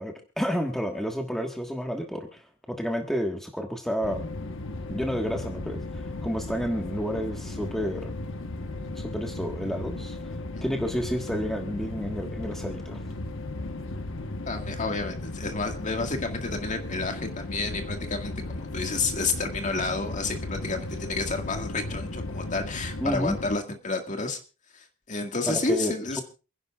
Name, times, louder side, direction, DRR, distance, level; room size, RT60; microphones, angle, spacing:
voice 1, 0.0-4.3 4.9-8.1 8.9-10.2 10.6-13.0 23.0-23.4 25.4-26.2, equal, ahead, 2 dB, 1.5 m, -30 dB
sound 1, 4.0-23.6, left 2 dB, 65° left, 1.1 m, -36 dB
voice 2, 14.5-24.4 24.7-26.2, left 3 dB, 35° left, 4 dB, 1.9 m, -30 dB
28.0 x 11.0 x 2.4 m, 0.32 s
head